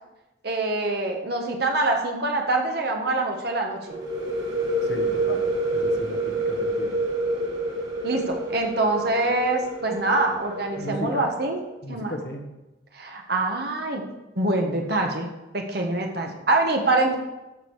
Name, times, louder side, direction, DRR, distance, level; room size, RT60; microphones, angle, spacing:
voice 1, 0.4-4.0 8.0-11.6 11.9-12.1 12.9-14.0 14.3-15.3 15.5-17.2, right 2 dB, 55° right, 2 dB, 1.4 m, -25 dB
sound 1, 3.9-11.5, right 2 dB, 75° right, 2.7 m, -28 dB
voice 2, 4.8-5.4 5.7-7.0 10.8-11.3 11.8-12.5, left 1 dB, 55° left, 3 dB, 1.4 m, -35 dB
14.0 x 5.0 x 4.8 m, 1.0 s
head